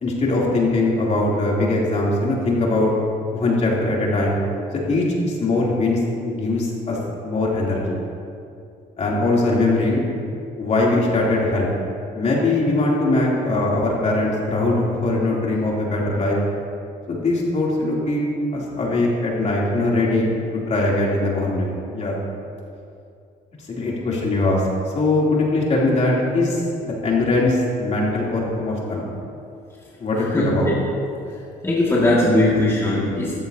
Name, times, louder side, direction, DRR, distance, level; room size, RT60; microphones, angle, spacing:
voice 1, 0.0-2.9 3.3-4.4 4.9-8.0 9.0-10.0 10.6-11.7 12.1-16.4 17.1-18.2 18.5-22.1 23.7-24.6 24.9-29.0 30.0-30.7, left 2 dB, 40° left, -4 dB, 3.1 m, -21 dB
voice 2, 30.3-30.8 31.6-33.4, left 1 dB, 15° left, -6 dB, 2.1 m, -19 dB
14.0 x 13.5 x 2.8 m, 2.5 s
cardioid pair, 110°, 17 cm